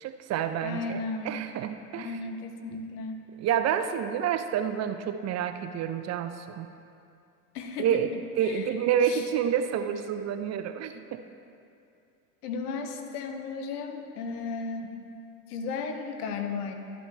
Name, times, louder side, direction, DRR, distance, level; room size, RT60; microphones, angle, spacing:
voice 1, 0.0-2.2 3.4-6.7 7.8-8.1 8.4-11.2, right 9 dB, 35° right, 9 dB, 0.5 m, -28 dB
voice 2, 0.6-1.5 1.9-3.2 7.5-8.8 9.0-9.3 12.4-15.0 15.5-16.7, left 4 dB, 75° left, 5 dB, 1.1 m, -35 dB
12.0 x 8.7 x 3.3 m, 2.5 s
hypercardioid pair, 80°, 46 cm